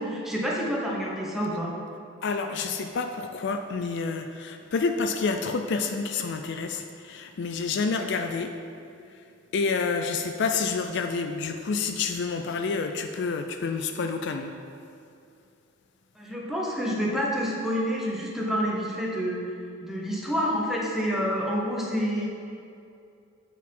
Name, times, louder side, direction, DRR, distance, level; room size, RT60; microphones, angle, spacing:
voice 1, 0.0-1.7 16.1-19.5 19.8-22.3, equal, ahead, -3 dB, 0.9 m, -28 dB
voice 2, 2.2-8.5 9.5-14.5, left 4 dB, 55° left, 6 dB, 0.4 m, -28 dB
8.3 x 4.5 x 5.4 m, 2.5 s
head